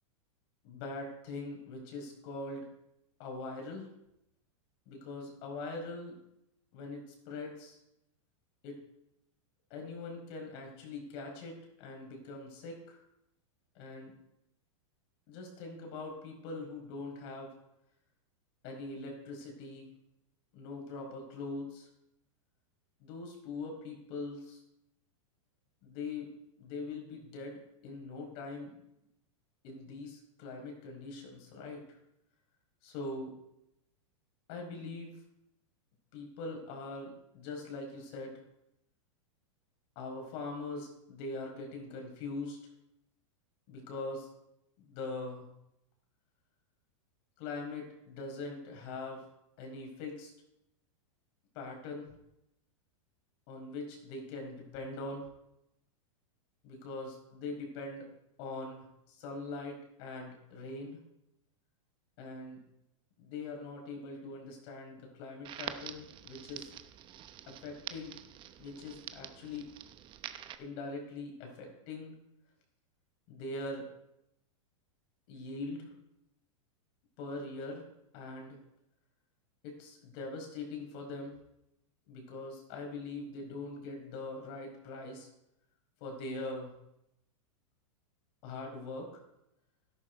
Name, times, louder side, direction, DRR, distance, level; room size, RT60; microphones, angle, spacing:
voice 1, 0.6-2.7 3.2-3.9 4.9-6.1 6.7-7.8 8.6-8.8 9.7-13.0 13.7-14.1 15.3-17.5 18.6-19.9 20.5-21.9 23.0-24.6 25.8-28.8 29.6-32.0 32.8-33.3 34.5-35.1 36.1-38.4 39.9-42.6 43.7-44.3 44.9-45.5 47.4-49.3 49.6-50.3 51.5-52.2 53.5-55.3 56.6-58.1 58.4-61.0 62.2-62.6 63.2-66.7 67.5-68.1 68.6-69.7 70.6-72.1 73.3-73.9 75.3-75.9 77.2-77.9 78.1-78.6 79.6-81.4 82.1-85.3 86.0-86.7 88.4-89.1, left 3 dB, 50° left, 2 dB, 4.9 m, -42 dB
Crackle, 65.4-70.5, right 11 dB, 30° right, 0.9 m, -46 dB
12.5 x 11.5 x 4.7 m, 0.83 s
hypercardioid pair, 135°, 17 cm